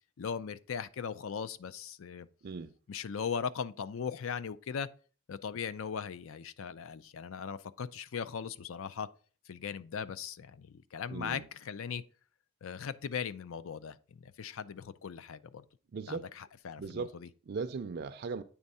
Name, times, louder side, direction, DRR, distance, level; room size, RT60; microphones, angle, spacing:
voice 1, 0.2-2.3 2.9-4.9 5.3-9.1 9.5-12.0 12.6-15.6 16.1-17.3, left 6 dB, 70° left, 0.4 m, -39 dB
voice 2, 11.1-11.5 15.9-16.3 16.8-17.1 17.5-18.4, right 4 dB, 50° right, 0.4 m, -38 dB
8.6 x 3.5 x 5.4 m
head